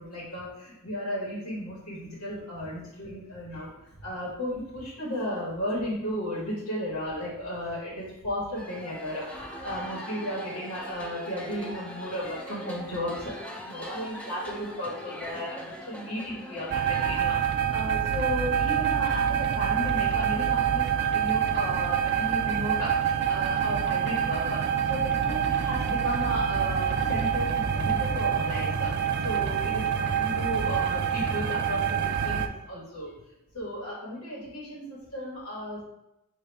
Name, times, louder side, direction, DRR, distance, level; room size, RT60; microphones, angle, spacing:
voice 1, 0.0-9.3 9.6-33.1 33.5-35.8, equal, 90° left, -6 dB, 1.4 m, -34 dB
sound 1, 8.6-17.2, equal, 5° left, 0.5 m, -41 dB
sound 2, 16.7-32.5, right 8 dB, 50° right, 0.3 m, -26 dB
5.1 x 2.6 x 3.3 m, 0.89 s
head